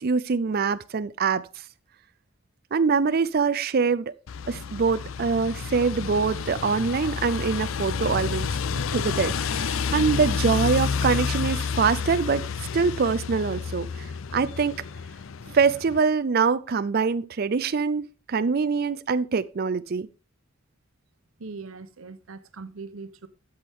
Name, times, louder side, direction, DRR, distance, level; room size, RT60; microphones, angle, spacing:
voice 1, 0.0-1.5 2.7-4.1 4.5-8.5 8.7-12.4 12.7-14.7 15.5-20.1, right 5 dB, 50° right, 0.4 m, -24 dB
sound 1, 4.3-16.0, left 5 dB, 75° left, 0.5 m, -30 dB
voice 2, 21.4-23.3, right 4 dB, 85° right, 0.9 m, -40 dB
12.5 x 7.8 x 3.6 m
head